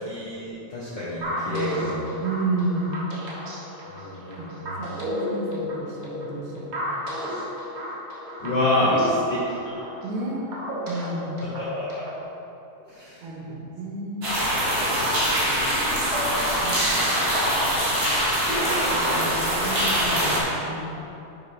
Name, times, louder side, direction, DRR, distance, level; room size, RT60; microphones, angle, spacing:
voice 1, 0.0-2.0 3.8-4.8 8.4-9.0 9.3-9.4 9.6-9.8 11.6-12.0 12.9-13.2 18.9-19.1, left 2 dB, 70° left, -7 dB, 1.1 m, -28 dB
sound 1, 1.2-12.2, equal, 60° right, 0.9 m, -33 dB
voice 2, 1.5-1.9 2.2-3.0 4.4-4.5 4.8-6.7 8.4-9.1 10.0-10.4 10.9-11.4 13.2-14.3 16.6-17.3 18.9-20.8, right 2 dB, 80° right, -2 dB, 2.4 m, -32 dB
sound 2, 14.2-20.4, equal, 30° right, 1.1 m, -23 dB
10.0 x 5.2 x 3.2 m, 2.8 s
omnidirectional pair, 3.3 m